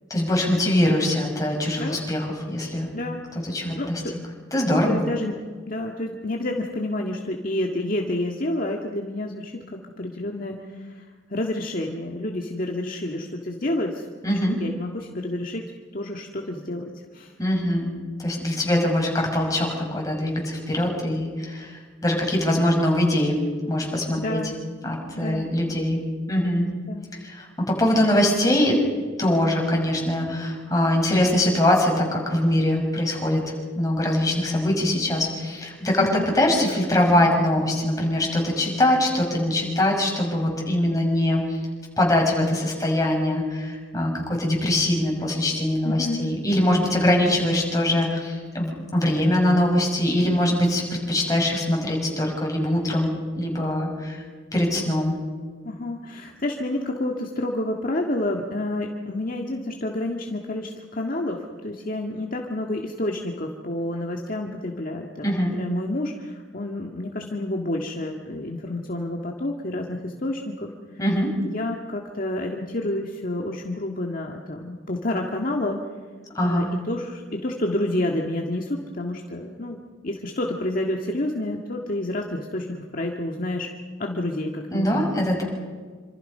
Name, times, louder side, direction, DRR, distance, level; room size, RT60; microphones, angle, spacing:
voice 1, 0.1-2.9 3.4-4.0 4.5-5.0 14.2-14.6 17.4-17.9 18.2-23.4 23.7-24.4 24.8-26.0 26.3-26.7 27.2-28.8 29.2-41.6 42.0-54.2 54.5-55.2 65.2-65.5 71.0-71.3 76.3-76.7 84.7-85.4, left 1 dB, 20° left, 0 dB, 6.3 m, -22 dB
voice 2, 3.7-4.1 4.9-5.4 5.7-14.1 14.3-15.6 15.9-17.3 24.2-24.6 25.2-25.5 26.9-27.1 36.0-36.3 45.8-46.3 55.6-71.0 71.4-75.8 76.4-79.8 80.0-83.7 84.0-85.1, left 1 dB, 45° left, 1 dB, 1.8 m, -29 dB
28.0 x 26.5 x 5.6 m, 1.5 s
head